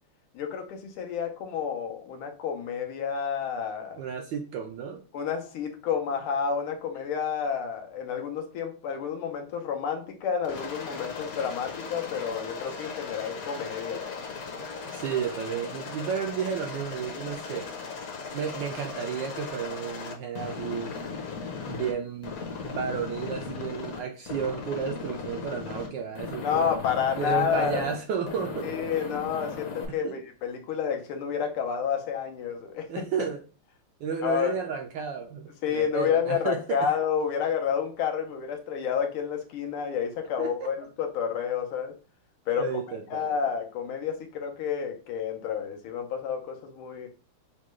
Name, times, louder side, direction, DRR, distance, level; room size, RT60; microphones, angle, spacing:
voice 1, 0.3-4.0 5.1-14.2 26.4-27.8 28.6-33.0 34.2-34.5 35.6-42.0 42.5-42.7 43.1-47.1, left 7 dB, 80° left, 1.7 m, -30 dB
voice 2, 4.0-5.0 14.8-17.7 18.3-21.0 21.7-22.3 22.6-26.7 27.2-28.7 29.9-30.2 32.9-33.4 34.0-36.9 40.4-40.7 42.6-43.3, right 7 dB, 75° right, 1.0 m, -32 dB
Aircraft, 10.4-21.9 22.2-24.0 24.3-25.9 26.2-28.0 28.3-29.9, left 5 dB, 55° left, 1.1 m, -37 dB
6.2 x 2.2 x 3.1 m
omnidirectional pair, 2.4 m